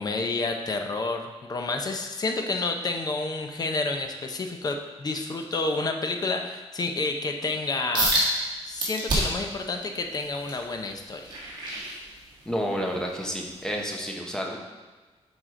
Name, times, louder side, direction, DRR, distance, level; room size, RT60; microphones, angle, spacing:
voice 1, 0.0-11.3, left 3 dB, 35° left, 4 dB, 0.7 m, -30 dB
sound 1, 7.9-8.3 8.8-9.5 10.0-12.5 13.0-13.3 13.8-13.9, right 1 dB, 40° right, 2.0 m, -27 dB
voice 2, 12.4-14.6, equal, 5° left, 0 dB, 0.9 m, -30 dB
9.3 x 4.8 x 3.7 m, 1.3 s
wide cardioid pair, 170°, 11 cm